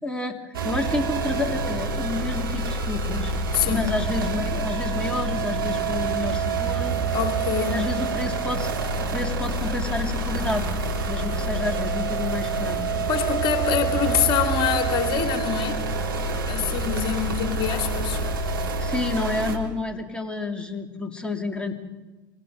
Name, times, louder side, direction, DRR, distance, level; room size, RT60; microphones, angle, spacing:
voice 1, 0.0-3.3 3.7-6.9 7.6-8.7 9.0-10.7 11.1-12.8 18.8-21.7, left 3 dB, 10° left, 2 dB, 3.5 m, -29 dB
sound 1, 0.5-19.6, right 3 dB, 80° right, 3.7 m, -27 dB
voice 2, 3.5-3.9 7.1-7.8 13.1-15.8 16.1-18.2, left 9 dB, 45° left, 4 dB, 3.2 m, -25 dB
28.0 x 27.0 x 5.3 m, 1.2 s
figure-of-eight pair, 75°, 12 cm